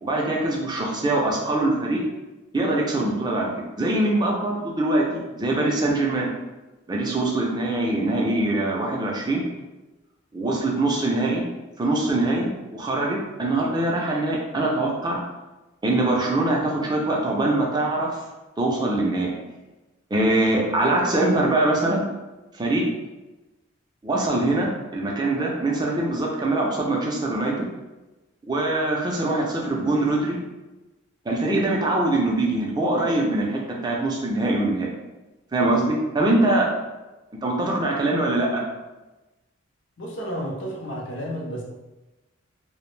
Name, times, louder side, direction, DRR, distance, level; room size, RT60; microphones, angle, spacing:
voice 1, 0.0-2.0 2.5-3.5 3.8-6.3 6.9-9.4 10.3-11.4 11.8-15.2 15.8-18.2 18.6-19.3 20.1-22.1 22.5-22.8 24.0-27.7 28.5-30.4 31.3-34.9 35.5-36.7 37.4-38.6, right 2 dB, 20° right, -2 dB, 0.3 m, -23 dB
voice 2, 40.0-41.6, equal, 60° left, -2 dB, 0.5 m, -31 dB
2.4 x 2.0 x 3.1 m, 1.1 s
head